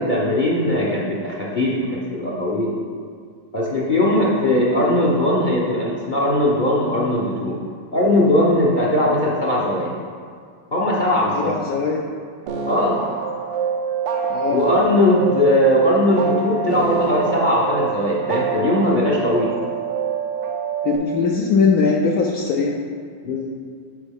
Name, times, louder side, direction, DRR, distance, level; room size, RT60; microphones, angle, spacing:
voice 1, 0.0-2.7 3.5-7.6 7.9-9.9 10.7-11.5 12.7-13.0 14.5-19.5 23.2-23.5, left 1 dB, 45° left, -5 dB, 0.6 m, -19 dB
voice 2, 11.3-12.0 14.3-14.6 20.8-22.8, left 4 dB, 70° left, -1 dB, 0.9 m, -20 dB
sound 1, 12.5-21.0, right 6 dB, 80° right, 1.3 m, -25 dB
8.2 x 4.5 x 3.5 m, 2.1 s
omnidirectional pair, 1.9 m